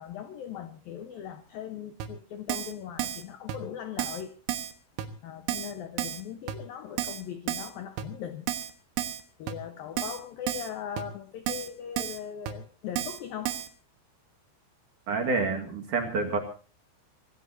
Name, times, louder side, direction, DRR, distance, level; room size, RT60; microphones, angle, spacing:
voice 1, 0.0-4.3 5.2-8.5 9.4-13.6, left 9 dB, 90° left, 9 dB, 2.0 m, -39 dB
Keyboard (musical), 2.0-2.1 2.5-2.7 3.0-3.2 3.5-3.6 4.0-4.2 4.5-4.7 5.0-5.1 5.5-5.7 6.0-6.2 6.5-6.6 7.0-7.2 7.5-7.7 8.0-8.1 8.5-8.7 9.0-9.2 9.5-9.6 10.0-10.2 10.5-10.7 11.0-11.1 11.5-11.7 12.0-12.2 12.5-12.6 13.0-13.2 13.5-13.7, right 12 dB, 80° right, 4.0 m, -32 dB
voice 2, 15.1-16.4, right 3 dB, 55° right, 3 dB, 2.5 m, -28 dB
26.0 x 16.0 x 2.8 m, 0.38 s
omnidirectional pair, 6.0 m